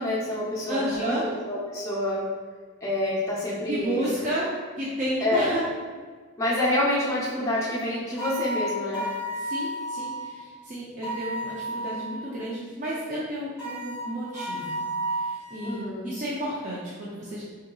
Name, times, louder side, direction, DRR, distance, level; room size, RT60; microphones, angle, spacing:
voice 1, 0.0-2.2 2.8-4.0 5.2-5.6 6.4-9.1 15.6-16.0, left 1 dB, 15° left, -8 dB, 0.5 m, -27 dB
voice 2, 0.7-1.2 3.7-4.5 4.8-5.6 9.3-14.8 15.1-17.4, right 1 dB, 35° right, -8 dB, 0.4 m, -32 dB
sound 1, 8.2-10.3 11.0-12.3 13.6-15.8, right 1 dB, 15° right, 1.0 m, -32 dB
3.7 x 2.7 x 2.3 m, 1.5 s
head